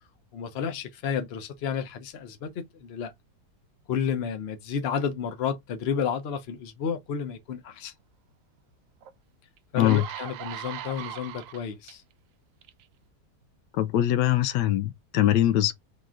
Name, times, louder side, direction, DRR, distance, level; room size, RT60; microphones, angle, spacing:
voice 1, 0.3-3.1 3.9-7.9 9.7-12.0, left 7 dB, 50° left, 0.8 m, -31 dB
sound 1, 9.0-9.1 9.6-11.9 12.6-12.8, right 11 dB, 70° right, 0.8 m, -39 dB
voice 2, 9.7-10.1 13.7-15.7, left 13 dB, 85° left, 1.2 m, -22 dB
3.8 x 3.0 x 3.6 m
omnidirectional pair, 1.8 m